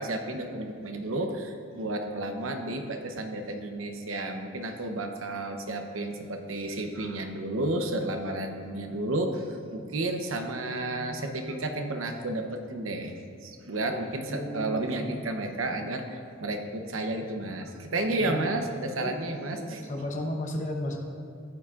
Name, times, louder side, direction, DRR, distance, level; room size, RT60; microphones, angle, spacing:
voice 1, 0.0-19.9, right 2 dB, 75° right, 5 dB, 0.8 m, -32 dB
voice 2, 14.3-14.8 18.2-18.5 19.0-21.0, left 1 dB, 35° left, 1 dB, 0.9 m, -34 dB
13.5 x 8.3 x 2.5 m, 2.4 s
head